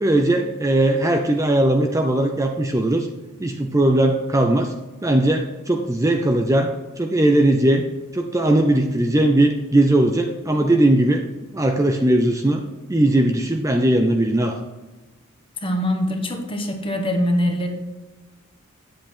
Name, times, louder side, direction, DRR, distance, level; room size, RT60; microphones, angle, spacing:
voice 1, 0.0-3.1 3.4-4.7 5.0-7.9 8.1-11.2 11.5-14.6, right 1 dB, 15° right, 4 dB, 0.6 m, -19 dB
voice 2, 15.6-17.7, equal, 25° left, 4 dB, 1.3 m, -23 dB
9.2 x 7.7 x 4.5 m, 1.2 s
head